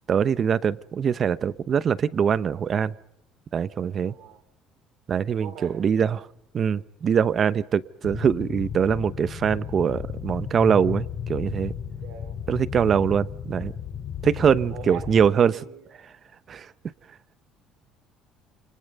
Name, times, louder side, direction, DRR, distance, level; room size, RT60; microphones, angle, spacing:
voice 1, 0.1-2.9 3.5-4.1 5.1-6.3 6.5-11.7 12.5-13.7 14.2-15.6 16.5-16.7, right 7 dB, 35° right, 0.9 m, -23 dB
voice 2, 4.1-4.4 5.4-5.8 12.0-12.4 14.7-16.0, right 9 dB, 75° right, 3.4 m, -42 dB
sound 1, 8.0-15.3, left 8 dB, 40° left, 2.6 m, -34 dB
29.5 x 25.5 x 5.5 m
cardioid pair, 140°, 0 cm